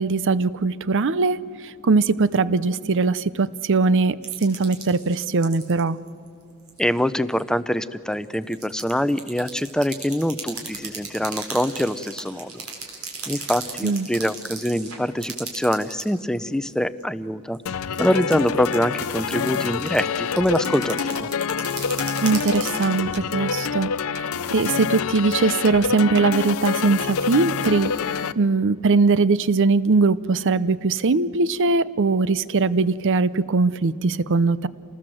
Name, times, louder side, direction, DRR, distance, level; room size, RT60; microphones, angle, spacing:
voice 1, 0.0-6.0 13.8-14.1 22.2-27.9 28.4-34.7, right 3 dB, 60° right, 18 dB, 0.6 m, -21 dB
sound 1, 4.2-5.8 6.1-6.3 6.7-7.0 7.3-7.4 8.1-16.1 16.4-17.0 17.5-23.2, right 5 dB, 75° right, 4.2 m, -36 dB
voice 2, 6.8-12.6 13.3-17.6 18.0-21.3, equal, 5° left, 14 dB, 0.5 m, -24 dB
sound 2, 17.7-28.3, left 6 dB, 70° left, 0.6 m, -27 dB
28.0 x 19.5 x 7.7 m, 2.5 s
head